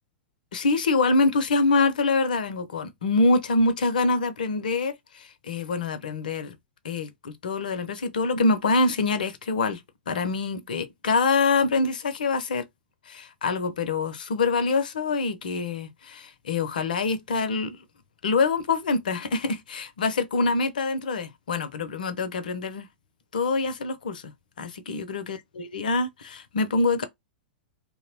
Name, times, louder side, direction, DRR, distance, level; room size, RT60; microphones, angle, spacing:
voice 1, 0.5-6.6 6.8-12.6 13.1-17.8 18.2-22.9 23.3-24.3 24.6-27.0, left 3 dB, 65° left, 0.5 m, -25 dB
2.7 x 2.0 x 2.7 m
figure-of-eight pair, 100°, 5 cm